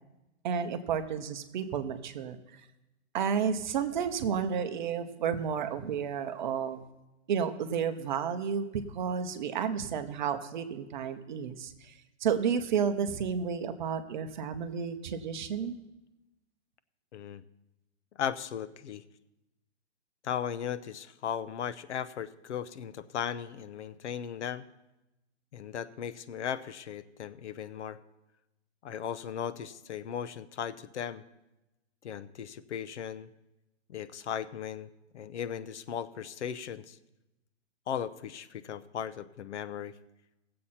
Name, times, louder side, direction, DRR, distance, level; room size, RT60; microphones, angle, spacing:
voice 1, 0.4-2.4 3.1-6.8 7.3-11.9 12.2-15.7, right 7 dB, 40° right, 8 dB, 0.9 m, -31 dB
voice 2, 17.1-17.4 18.2-19.0 20.2-24.6 25.5-28.0 28.8-31.2 32.0-33.3 33.9-37.0 37.9-40.0, left 8 dB, 75° left, 14 dB, 0.8 m, -37 dB
17.5 x 7.6 x 4.3 m, 0.97 s
hypercardioid pair, 165°, 35 cm